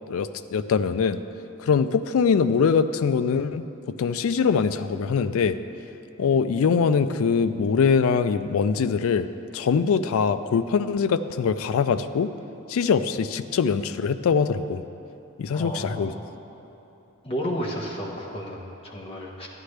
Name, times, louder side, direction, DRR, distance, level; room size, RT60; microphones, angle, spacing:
voice 1, 0.1-1.2 1.6-5.6 6.2-9.3 9.5-12.3 12.7-14.8 15.4-16.1, left 6 dB, 75° left, 11 dB, 0.3 m, -23 dB
voice 2, 15.5-16.3 17.2-19.5, equal, 25° left, -2 dB, 1.0 m, -32 dB
11.5 x 10.0 x 3.3 m, 2.9 s
head